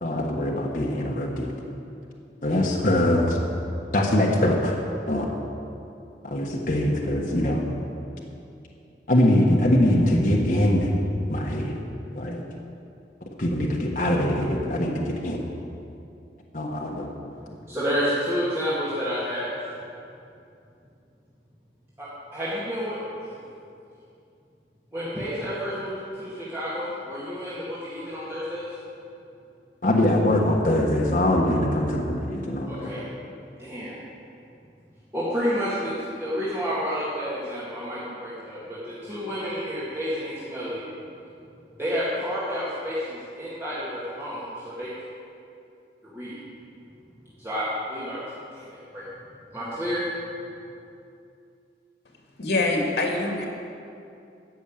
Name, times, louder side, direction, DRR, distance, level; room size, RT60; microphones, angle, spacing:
voice 1, 0.0-1.5 2.4-3.4 3.9-4.8 5.1-5.3 6.2-7.6 9.1-10.9 11.3-11.8 12.1-12.4 13.4-15.4 16.5-17.1 29.8-32.9, left 1 dB, 50° left, -2 dB, 1.3 m, -22 dB
voice 2, 17.3-19.5 22.0-23.3 24.9-28.7 32.7-33.0 33.6-34.0 35.1-40.8 41.8-44.9 46.0-46.4 47.4-48.2 48.5-49.0 49.5-50.0, equal, 15° right, -11 dB, 2.2 m, -30 dB
voice 3, 52.4-53.5, left 2 dB, 75° left, 0 dB, 2.4 m, -24 dB
14.5 x 6.3 x 8.8 m, 2.6 s
head